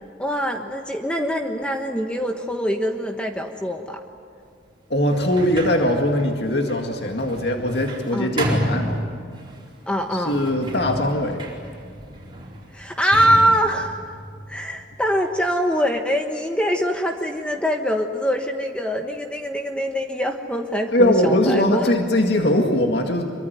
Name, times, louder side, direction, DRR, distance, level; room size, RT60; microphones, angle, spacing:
voice 1, 0.2-4.0 8.1-8.4 9.9-10.4 12.7-14.0 14.5-21.9, equal, 5° left, 3 dB, 1.2 m, -23 dB
voice 2, 4.9-9.0 10.1-11.4 20.9-23.3, left 1 dB, 65° left, 3 dB, 2.1 m, -21 dB
Sliding door, 5.1-9.6 10.2-15.1, equal, 25° right, 4.4 m, -32 dB
26.5 x 24.0 x 9.5 m, 2.4 s
head